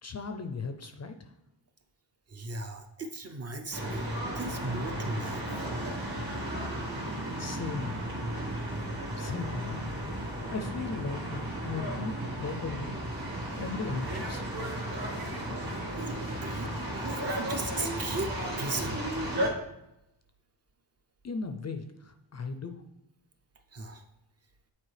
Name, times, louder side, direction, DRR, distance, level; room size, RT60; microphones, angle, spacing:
voice 1, 0.0-1.3 7.4-8.0 9.2-10.0 10.5-13.0 13.6-14.5 21.2-22.8, left 4 dB, 35° left, 7 dB, 0.4 m, -37 dB
voice 2, 2.3-5.5 16.0-19.0 23.7-24.0, right 2 dB, 35° right, 5 dB, 0.5 m, -37 dB
sound 1, 3.7-19.5, right 1 dB, 50° right, 1.8 m, -34 dB
8.8 x 4.3 x 3.2 m, 0.87 s
wide cardioid pair, 150°, 46 cm